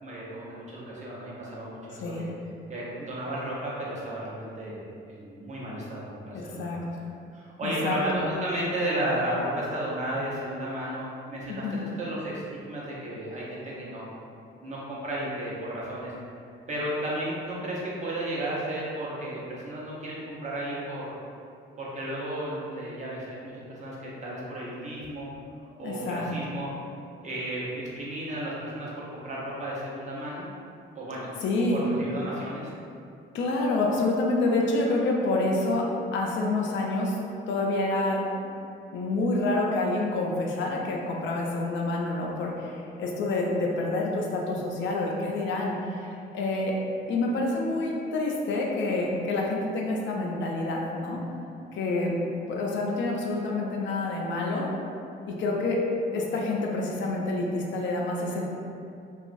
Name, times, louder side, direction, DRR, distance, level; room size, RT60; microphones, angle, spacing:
voice 1, 0.0-2.3 2.7-4.8 5.1-6.9 7.3-14.0 14.6-16.1 16.7-21.1 21.8-25.3 25.8-26.7 27.2-30.4 30.9-31.3 31.7-32.7, right 1 dB, 35° right, -6 dB, 0.8 m, -33 dB
voice 2, 6.3-6.8 7.6-8.0 11.5-11.8 25.8-26.3 31.4-31.8 33.3-37.2 37.5-38.2 38.9-46.7 47.1-51.2 51.7-52.1 52.5-54.7 55.3-55.8 56.1-58.4, left 2 dB, 70° left, -1 dB, 0.5 m, -28 dB
2.9 x 2.3 x 2.5 m, 2.5 s
cardioid pair, 90°, 20 cm